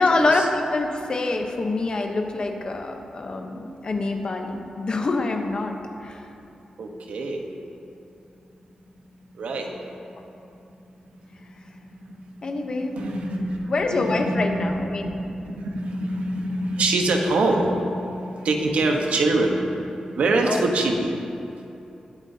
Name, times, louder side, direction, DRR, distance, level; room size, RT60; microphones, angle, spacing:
voice 1, 0.0-6.3 10.2-10.3 12.4-13.0 13.7-15.1 20.4-20.6, left 3 dB, 40° left, 4 dB, 0.9 m, -25 dB
voice 2, 6.8-7.4 9.4-9.7 12.9-14.4 14.9-19.6 20.1-21.1, right 2 dB, 85° right, 2 dB, 1.1 m, -24 dB
19.5 x 8.0 x 2.8 m, 2.8 s
wide cardioid pair, 145°, 2 cm